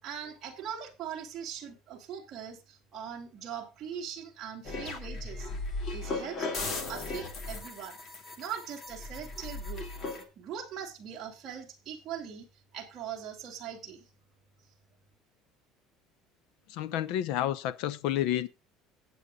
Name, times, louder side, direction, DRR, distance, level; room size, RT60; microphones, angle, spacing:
voice 1, 0.0-5.5 5.9-8.0 8.2-9.8 10.4-12.5 12.7-14.1, right 8 dB, 30° right, 2.7 m, -41 dB
sound 1, 4.6-10.2, left 3 dB, 35° left, 2.6 m, -37 dB
voice 2, 16.7-18.5, left 12 dB, 65° left, 0.9 m, -30 dB
18.0 x 8.2 x 2.4 m
cardioid pair, 175°, 0 cm